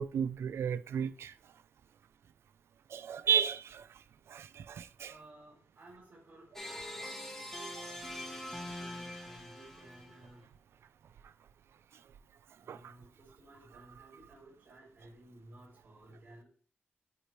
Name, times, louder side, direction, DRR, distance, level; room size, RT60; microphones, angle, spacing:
voice 1, 0.0-1.3 2.9-3.8 4.3-5.1 12.7-12.9, right 8 dB, 80° right, 0.4 m, -33 dB
voice 2, 5.0-10.5 12.6-16.4, right 1 dB, 40° right, 2.8 m, -56 dB
sound 1, 6.6-10.3, left 1 dB, 5° left, 0.9 m, -43 dB
8.3 x 3.2 x 4.3 m
wide cardioid pair, 160°, 4 cm